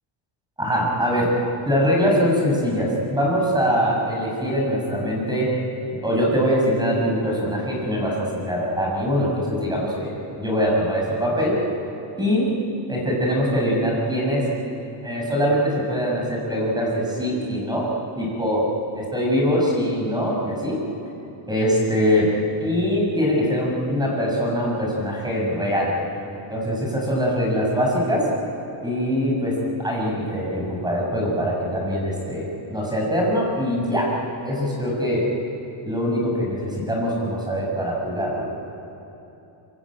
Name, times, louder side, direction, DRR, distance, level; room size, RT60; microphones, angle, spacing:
voice 1, 0.6-1.3 1.7-5.5 6.0-10.1 10.4-11.6 12.2-12.5 12.9-14.4 15.0-17.9 18.2-18.6 18.9-20.8 21.5-22.3 22.6-25.9 26.5-28.2 28.8-34.1 34.4-35.2 35.8-38.5, equal, 10° right, -2 dB, 7.2 m, -23 dB
26.0 x 23.0 x 8.9 m, 3.0 s
cardioid pair, 135°, 50 cm